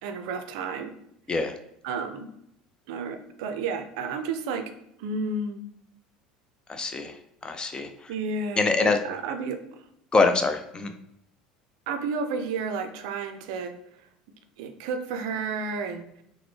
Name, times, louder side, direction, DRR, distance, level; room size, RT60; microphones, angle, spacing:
voice 1, 0.0-0.9 1.8-2.3 2.9-4.7 5.0-5.6 8.1-9.6 11.9-13.7 14.6-16.0, right 4 dB, 70° right, 7 dB, 0.4 m, -31 dB
voice 2, 6.7-7.2 7.4-8.1 8.6-9.0 10.1-10.9, left 3 dB, 25° left, 7 dB, 0.5 m, -24 dB
3.8 x 2.1 x 3.1 m, 0.75 s
hypercardioid pair, 75°, 4 cm